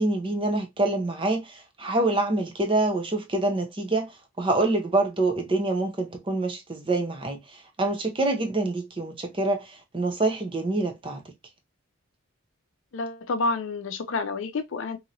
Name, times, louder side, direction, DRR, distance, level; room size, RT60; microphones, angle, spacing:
voice 1, 0.0-4.1 4.4-11.2, right 2 dB, 25° right, 0.5 m, -26 dB
voice 2, 12.9-15.0, left 3 dB, 65° left, 0.5 m, -29 dB
2.9 x 2.7 x 2.6 m
head